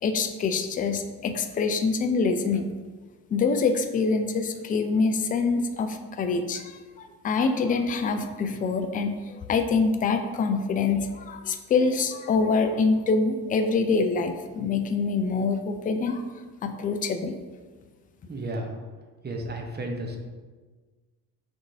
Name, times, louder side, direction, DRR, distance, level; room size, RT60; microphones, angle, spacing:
voice 1, 0.0-2.7 3.3-16.2 16.6-17.4, left 4 dB, 20° left, 7 dB, 0.3 m, -25 dB
voice 2, 18.3-18.8 19.2-20.2, right 1 dB, 20° right, 2 dB, 0.9 m, -33 dB
6.0 x 3.0 x 2.7 m, 1.4 s
figure-of-eight pair, 50°, 48 cm